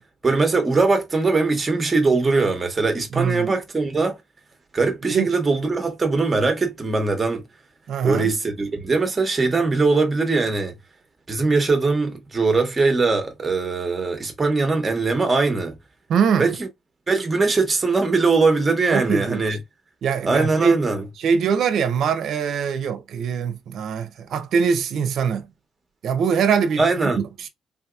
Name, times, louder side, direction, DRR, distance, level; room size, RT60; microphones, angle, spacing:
voice 1, 0.2-4.2 4.7-7.5 8.0-10.8 11.3-15.8 16.4-16.7 17.1-19.6 20.2-21.1 26.8-27.2, right 3 dB, 20° right, 0.9 m, -21 dB
voice 2, 3.1-3.5 5.1-5.3 7.9-8.3 16.1-16.5 18.9-19.4 20.0-20.8 21.2-25.5 26.0-26.8 27.2-27.5, right 6 dB, 60° right, 0.6 m, -22 dB
3.7 x 2.8 x 2.3 m
cardioid pair, 165°, 0 cm